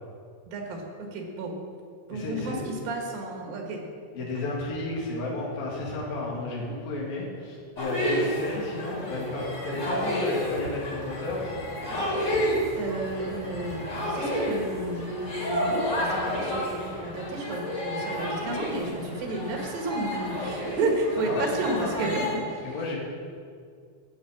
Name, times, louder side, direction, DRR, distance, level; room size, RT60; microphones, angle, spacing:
voice 1, 0.5-1.6 2.1-3.8 4.2-4.3 12.8-22.4, right 2 dB, 75° right, 1 dB, 3.5 m, -31 dB
voice 2, 2.1-2.7 4.2-11.5 11.9-12.1 21.2-22.1 22.6-23.0, left 2 dB, 75° left, -4 dB, 3.8 m, -32 dB
sound 1, 7.8-22.3, equal, 30° left, 3.1 m, -31 dB
sound 2, 10.4-17.8, right 1 dB, 35° right, 1.3 m, -46 dB
13.5 x 5.6 x 8.5 m, 2.2 s
omnidirectional pair, 4.3 m